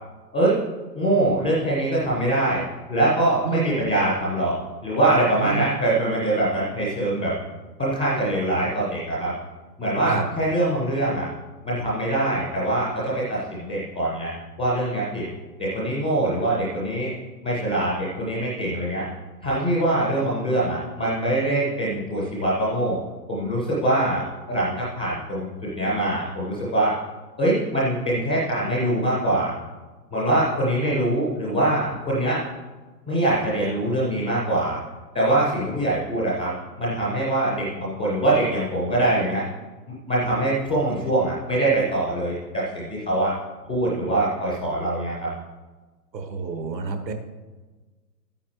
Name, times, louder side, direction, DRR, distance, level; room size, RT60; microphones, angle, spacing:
voice 1, 0.9-2.6 2.9-4.6 4.8-7.3 7.8-9.3 9.8-11.3 11.6-14.3 14.6-15.3 15.6-17.1 17.4-19.1 19.4-23.0 23.3-24.2 24.5-26.9 27.4-29.5 30.1-32.4 33.1-34.8 35.1-36.5 36.8-39.4 40.1-43.3 43.7-45.3, right 1 dB, 5° left, -5 dB, 0.4 m, -23 dB
voice 2, 5.3-5.7 10.1-10.2 46.1-47.1, right 4 dB, 80° right, 5 dB, 1.5 m, -29 dB
13.0 x 9.0 x 3.0 m, 1.3 s
figure-of-eight pair, 120°, 50 cm